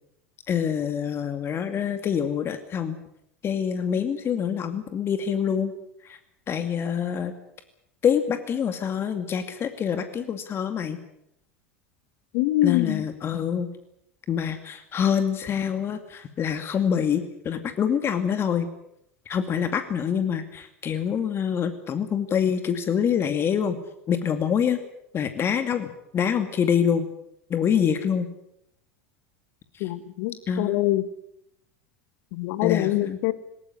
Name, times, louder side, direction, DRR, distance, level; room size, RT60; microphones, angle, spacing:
voice 1, 0.5-3.0 3.4-5.7 6.0-6.2 6.5-7.3 8.0-11.0 12.6-13.7 14.3-18.7 19.3-23.8 24.1-24.8 25.1-27.1 27.5-28.3 29.7-29.9 30.5-30.8 32.6-33.2, left 8 dB, 35° left, 8 dB, 2.4 m, -26 dB
voice 2, 12.3-13.0 29.8-31.0 32.3-33.3, left 16 dB, 60° left, 14 dB, 1.7 m, -24 dB
19.5 x 19.5 x 10.0 m, 0.78 s
hypercardioid pair, 80°, 7 cm